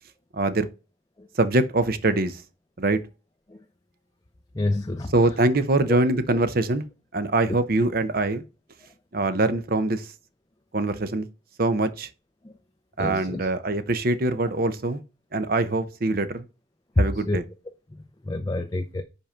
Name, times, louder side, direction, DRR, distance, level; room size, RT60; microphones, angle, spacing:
voice 1, 0.3-0.7 1.4-2.4 2.8-3.0 5.1-6.8 7.1-8.4 9.1-10.1 10.7-11.3 11.6-12.1 13.0-15.0 15.3-16.4 17.0-17.4, right 2 dB, 50° right, 0.8 m, -23 dB
voice 2, 4.5-5.1 5.9-6.0 12.4-12.5 13.0-13.5 17.3-17.4 18.3-19.0, left 2 dB, 20° left, 0.5 m, -28 dB
5.4 x 5.2 x 5.6 m
head